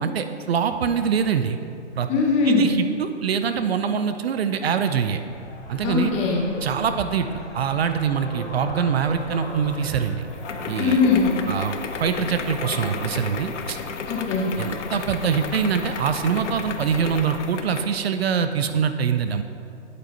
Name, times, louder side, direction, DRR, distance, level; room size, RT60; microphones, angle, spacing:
voice 1, 0.0-1.6 1.9-2.1 2.4-5.2 5.7-6.1 6.6-10.3 10.7-11.0 11.5-13.8 14.6-19.4, right 7 dB, 60° right, 9 dB, 0.5 m, -24 dB
voice 2, 2.1-2.7 5.8-6.4 10.8-11.3 14.1-14.5, left 4 dB, 20° left, -1 dB, 0.9 m, -20 dB
sound 1, 5.3-17.3, left 2 dB, 60° left, 1.6 m, -38 dB
sound 2, 9.2-18.0, left 5 dB, 80° left, 0.7 m, -34 dB
8.5 x 8.2 x 2.8 m, 2.6 s
hypercardioid pair, 135°, 36 cm